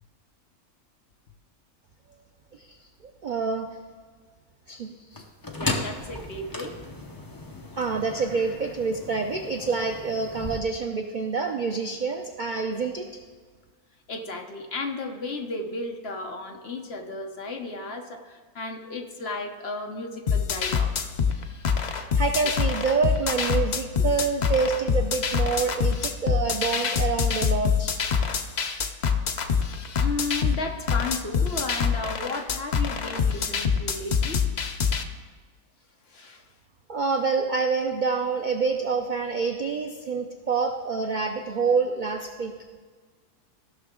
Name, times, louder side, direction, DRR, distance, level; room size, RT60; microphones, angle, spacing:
voice 1, 3.0-3.8 4.7-5.2 7.8-13.1 21.9-28.0 36.9-42.5, right 4 dB, 65° right, 5 dB, 0.4 m, -27 dB
sound 1, 5.1-10.6, left 2 dB, 20° left, 0.6 m, -35 dB
voice 2, 5.6-6.8 14.1-21.1 24.0-24.1 30.0-34.4 36.1-36.4, left 3 dB, 50° left, 3 dB, 1.0 m, -34 dB
sound 2, 20.3-35.0, left 6 dB, 65° left, 0.4 m, -25 dB
15.5 x 6.0 x 3.6 m, 1.5 s
omnidirectional pair, 1.6 m